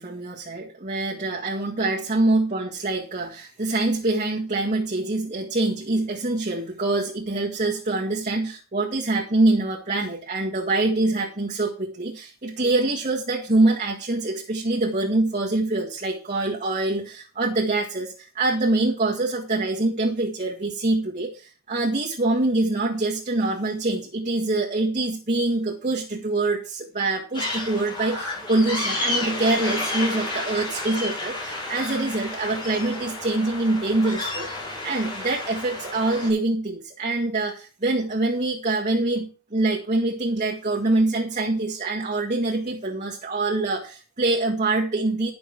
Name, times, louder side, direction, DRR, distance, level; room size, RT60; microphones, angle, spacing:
voice 1, 0.0-45.3, right 2 dB, 35° right, -2 dB, 1.7 m, -25 dB
sound 1, 27.3-36.3, left 2 dB, 20° left, 5.1 m, -31 dB
12.0 x 6.1 x 6.1 m, 0.35 s
head